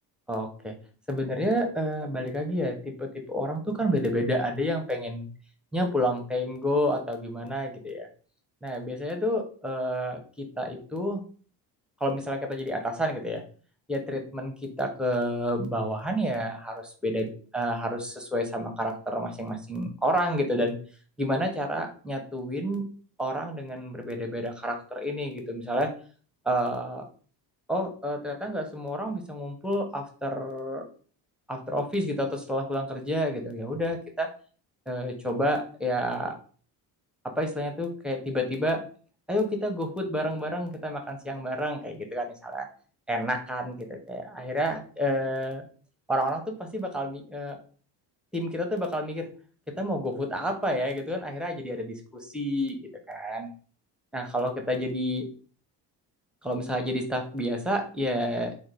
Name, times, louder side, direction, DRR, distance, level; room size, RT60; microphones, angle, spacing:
voice 1, 0.3-0.7 1.1-5.3 5.7-8.1 8.6-11.2 12.0-13.4 13.9-20.8 21.2-22.8 23.2-25.9 26.4-27.0 27.7-30.8 31.5-34.3 34.9-36.4 37.2-38.8 39.3-42.7 43.1-45.6 46.1-47.6 48.3-49.3 49.7-52.8 53.1-53.5 54.1-55.3 56.4-58.5, equal, ahead, 3 dB, 0.7 m, -29 dB
3.5 x 2.2 x 3.3 m, 0.41 s
supercardioid pair, 90°, 45 cm